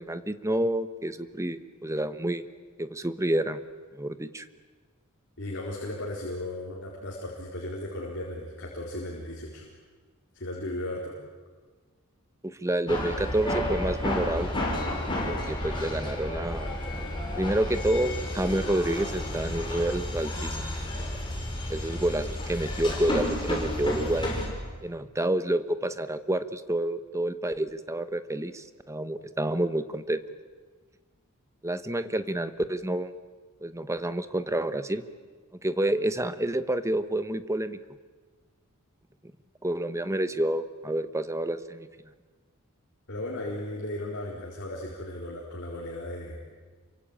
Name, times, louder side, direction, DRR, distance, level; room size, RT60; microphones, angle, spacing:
voice 1, 0.0-2.4 2.8-3.6 3.9-4.5 12.4-14.5 15.3-16.8 17.4-20.6 21.7-24.3 24.8-30.2 31.6-33.1 33.6-35.0 35.6-37.8 39.6-41.9, right 1 dB, 15° right, 11 dB, 1.1 m, -29 dB
voice 2, 5.4-9.7 10.3-11.2 43.1-46.5, left 1 dB, 55° left, -3 dB, 4.3 m, -36 dB
sound 1, 12.9-24.5, left 1 dB, 20° left, 6.7 m, -31 dB
28.0 x 24.0 x 8.9 m, 1.4 s
head